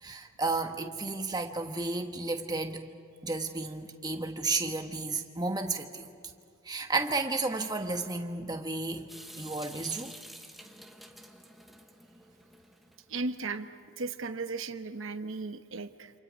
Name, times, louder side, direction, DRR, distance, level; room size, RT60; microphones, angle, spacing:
voice 1, 0.0-2.9 3.2-6.1 6.6-9.1 9.4-10.1, right 3 dB, 20° right, 5 dB, 1.2 m, -32 dB
Water tap faucet / Sink (filling or washing) / Drip, 9.1-13.2, right 1 dB, ahead, 1.1 m, -50 dB
voice 2, 13.1-13.7 14.0-16.1, right 3 dB, 60° right, 8 dB, 1.0 m, -36 dB
28.5 x 27.0 x 5.2 m, 2.2 s
head